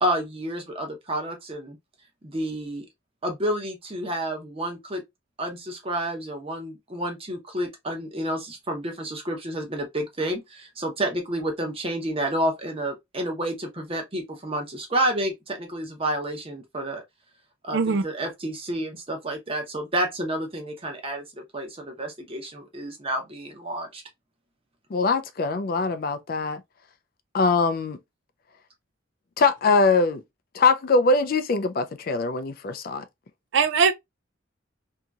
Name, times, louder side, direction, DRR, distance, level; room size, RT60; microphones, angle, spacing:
voice 1, 0.0-1.8 2.2-2.9 3.2-5.0 5.4-17.0 17.6-24.0, right 1 dB, 30° right, 0.8 m, -30 dB
voice 2, 17.7-18.0 33.5-33.9, right 5 dB, 65° right, 0.4 m, -20 dB
voice 3, 24.9-26.6 27.3-28.0 29.4-30.2 30.5-33.0, left 3 dB, 45° left, 0.4 m, -22 dB
2.8 x 2.7 x 2.3 m
head